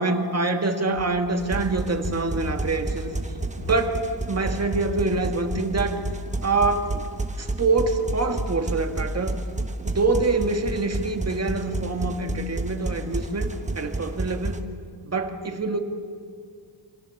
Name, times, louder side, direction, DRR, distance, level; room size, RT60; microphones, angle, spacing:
voice 1, 0.0-3.1 3.6-6.0 6.4-7.0 7.4-9.4 9.8-14.6 15.0-15.8, right 3 dB, 35° right, 5 dB, 1.9 m, -25 dB
Run, 0.9-7.9, left 1 dB, 35° left, 3.3 m, -41 dB
sound 1, 1.4-14.6, right 2 dB, 15° right, 1.3 m, -31 dB
29.0 x 25.5 x 7.2 m, 2.2 s
wide cardioid pair, 155°, 45 cm